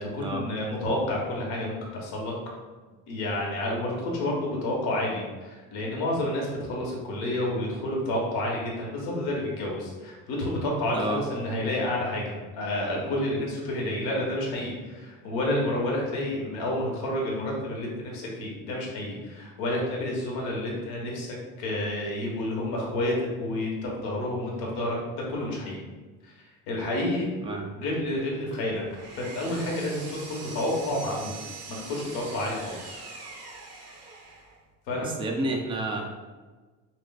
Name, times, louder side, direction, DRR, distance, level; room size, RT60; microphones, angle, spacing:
voice 1, 0.0-2.3 3.1-25.0 25.3-25.8 26.2-27.3 27.7-31.4 31.7-33.0 34.9-35.1, left 1 dB, 75° left, -2 dB, 1.2 m, -30 dB
Power tool, 28.5-34.6, right 3 dB, 45° right, 0.9 m, -43 dB
voice 2, 35.0-36.0, right 2 dB, 15° right, 0 dB, 0.4 m, -30 dB
6.0 x 2.4 x 2.3 m, 1.3 s
cardioid pair, 150°, 37 cm